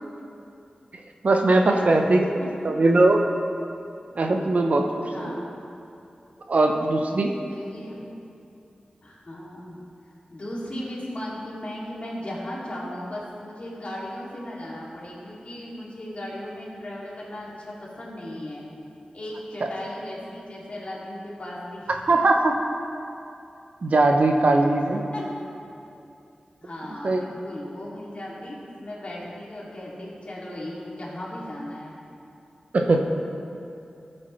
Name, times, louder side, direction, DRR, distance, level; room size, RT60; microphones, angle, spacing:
voice 1, 1.2-2.3 2.6-3.2 4.1-5.3 6.5-7.3 19.6-19.7 22.1-22.5 23.8-25.0 27.0-27.2 32.7-33.0, right 2 dB, 60° right, 3 dB, 0.8 m, -20 dB
voice 2, 5.1-5.6 7.6-8.0 9.0-9.8 10.3-18.6 19.1-22.0 24.9-25.3 26.6-32.0, left 1 dB, 50° left, -6 dB, 2.6 m, -36 dB
14.5 x 8.8 x 3.2 m, 2.7 s
wide cardioid pair, 75°, 3 cm